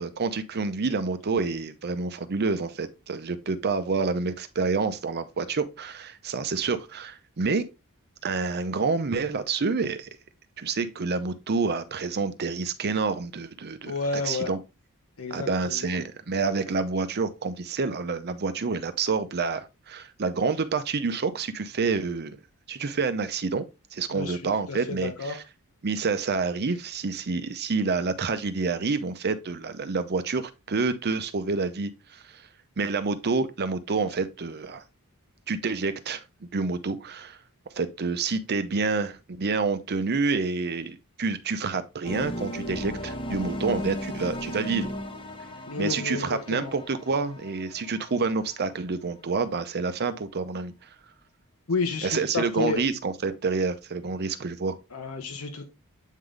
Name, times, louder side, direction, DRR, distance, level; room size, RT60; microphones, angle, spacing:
voice 1, 0.0-7.7 8.2-10.1 10.6-14.6 15.3-22.4 22.7-23.6 23.9-25.4 25.8-32.5 32.8-34.8 35.5-37.4 37.8-44.9 45.8-50.7 52.0-54.8, right 4 dB, 45° right, 0.6 m, -28 dB
voice 2, 13.9-14.5 15.2-16.0 24.1-24.4 24.7-25.4 45.7-46.7 51.7-52.8 54.9-55.7, left 4 dB, 70° left, 1.0 m, -31 dB
sound 1, 42.0-48.9, equal, 25° left, 1.0 m, -36 dB
8.2 x 3.9 x 3.2 m
head